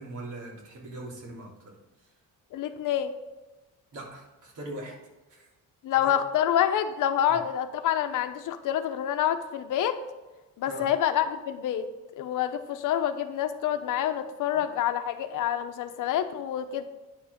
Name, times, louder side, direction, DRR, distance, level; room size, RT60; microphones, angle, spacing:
voice 1, 0.0-1.5 3.9-4.9 5.3-5.5 6.0-6.1 7.3-7.4 10.7-10.8, right 1 dB, 65° right, -3 dB, 3.1 m, -40 dB
voice 2, 2.5-3.1 5.8-10.0 10.6-11.9 12.2-16.8, left 10 dB, 70° left, 9 dB, 0.8 m, -27 dB
9.9 x 5.1 x 5.1 m, 1.1 s
cardioid pair, 135°, 33 cm